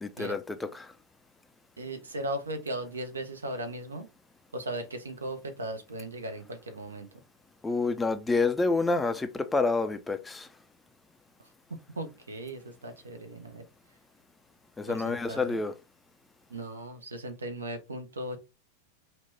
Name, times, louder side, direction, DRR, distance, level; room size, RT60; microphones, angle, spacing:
voice 1, 0.0-0.9 7.6-10.5 14.8-15.7, left 3 dB, 10° left, 0.3 m, -28 dB
voice 2, 1.8-4.1 4.5-7.1 11.7-13.6 14.9-15.6 16.5-18.4, right 1 dB, 75° right, 0.6 m, -37 dB
2.9 x 2.2 x 3.1 m
figure-of-eight pair, 90°, 0 cm